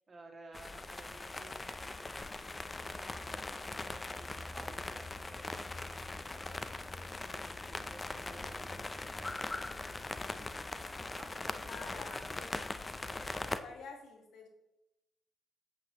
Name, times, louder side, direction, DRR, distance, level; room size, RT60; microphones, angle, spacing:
voice 1, 0.1-2.5 2.8-9.6 11.1-12.4, right 2 dB, 35° right, 0 dB, 2.3 m, -56 dB
sound 1, 0.5-13.6, left 2 dB, 25° left, 0.6 m, -41 dB
voice 2, 11.7-12.9 13.6-14.5, left 4 dB, 85° left, 2 dB, 1.7 m, -49 dB
8.6 x 7.7 x 3.1 m, 0.93 s
cardioid pair, 80°, 0 cm